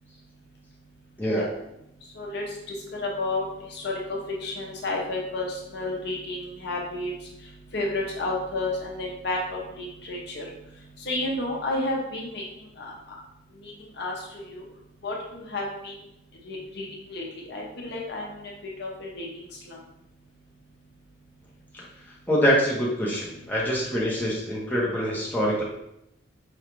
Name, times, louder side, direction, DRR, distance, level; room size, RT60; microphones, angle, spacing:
voice 1, 2.9-7.1 7.7-10.5 11.1-12.4 12.8-12.9 13.6-14.6 15.0-15.9 16.4-17.2 17.5-18.3 18.8-19.3 19.7-19.8, left 2 dB, 60° left, -1 dB, 0.7 m, -31 dB
voice 2, 22.3-25.6, equal, 10° left, -5 dB, 0.7 m, -25 dB
4.9 x 2.3 x 3.0 m, 0.84 s
head